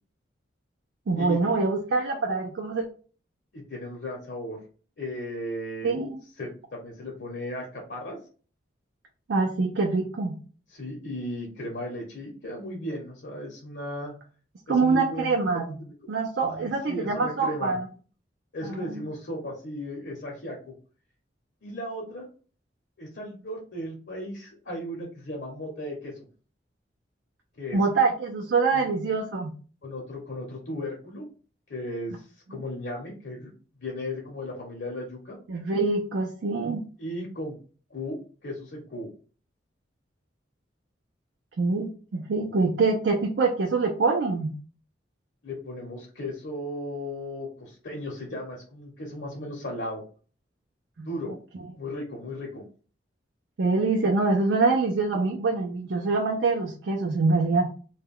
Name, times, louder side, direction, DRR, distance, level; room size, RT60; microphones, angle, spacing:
voice 1, 1.1-2.8 5.8-6.2 9.3-10.4 14.7-15.7 16.1-17.9 18.6-19.0 27.7-29.5 35.5-36.8 41.6-44.5 51.0-51.1 53.6-57.7, right 3 dB, 70° right, 2 dB, 0.4 m, -25 dB
voice 2, 3.5-4.6 5.0-5.9 6.4-8.2 10.7-14.1 14.7-15.6 16.4-17.8 18.5-20.7 21.6-22.2 23.0-26.3 27.6-27.8 28.7-28.9 29.8-31.3 31.7-33.5 33.8-35.4 37.0-37.6 37.9-39.1 45.4-50.0 51.0-51.3 51.7-52.6, left 1 dB, 65° left, -2 dB, 0.7 m, -36 dB
2.2 x 2.2 x 3.5 m, 0.39 s
head